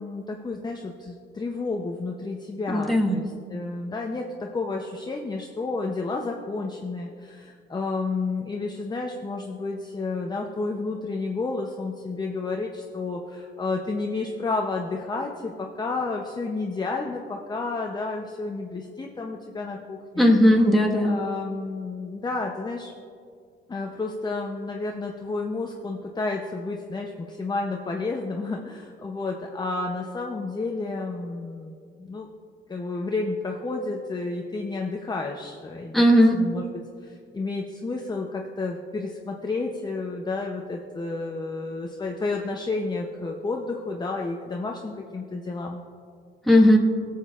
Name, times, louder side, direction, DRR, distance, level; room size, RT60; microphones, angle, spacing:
voice 1, 0.0-20.3 21.0-22.9 23.7-32.3 32.7-36.6 37.0-45.8, left 3 dB, 20° left, 1 dB, 0.7 m, -31 dB
voice 2, 2.7-3.2 20.2-21.2 35.9-36.4 46.5-46.8, equal, ahead, -2 dB, 1.5 m, -17 dB
18.0 x 7.2 x 2.5 m, 2.3 s
cardioid pair, 90°, 20 cm